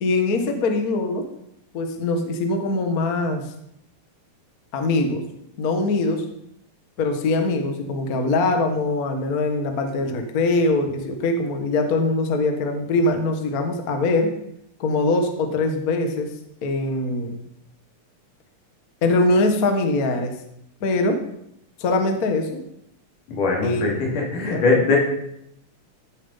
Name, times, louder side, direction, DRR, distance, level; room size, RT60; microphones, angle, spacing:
voice 1, 0.0-1.3 1.7-3.4 4.7-5.2 5.6-6.2 7.0-14.4 14.8-16.3 16.6-17.4 19.0-20.4 20.8-21.2 21.8-22.6 23.6-24.8, left 2 dB, 45° left, 5 dB, 1.2 m, -22 dB
voice 2, 23.3-23.9 24.3-25.0, left 4 dB, 90° left, -1 dB, 4.5 m, -20 dB
14.0 x 7.0 x 5.6 m, 0.76 s
omnidirectional pair, 3.6 m